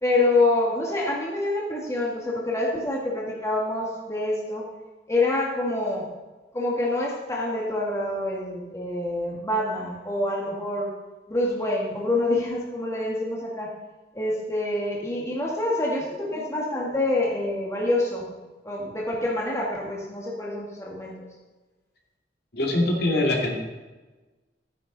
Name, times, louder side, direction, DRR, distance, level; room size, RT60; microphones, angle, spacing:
voice 1, 0.0-4.7 5.1-6.1 6.5-10.9 11.3-13.7 14.1-18.3 18.6-21.3, left 2 dB, 15° left, -3 dB, 1.8 m, -26 dB
voice 2, 22.5-23.6, left 1 dB, 60° left, -2 dB, 2.6 m, -23 dB
13.5 x 9.8 x 4.0 m, 1.2 s
head